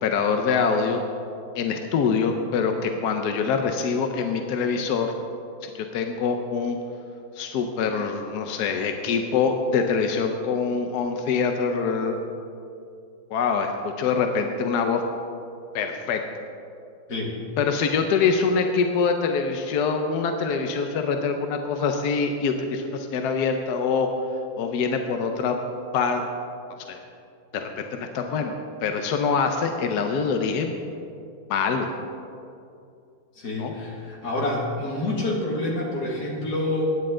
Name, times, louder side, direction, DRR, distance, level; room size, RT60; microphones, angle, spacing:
voice 1, 0.0-1.0 1.5-5.1 5.6-6.8 7.4-12.2 13.3-15.0 15.7-16.2 17.6-24.1 24.6-25.6 25.9-26.3 26.9-27.0 27.5-28.5 28.8-30.7 31.5-31.9 33.6-33.7, left 5 dB, 70° left, 5 dB, 1.0 m, -24 dB
voice 2, 33.4-36.9, left 2 dB, 45° left, -2 dB, 2.5 m, -27 dB
16.5 x 10.0 x 3.8 m, 2.6 s
omnidirectional pair, 2.4 m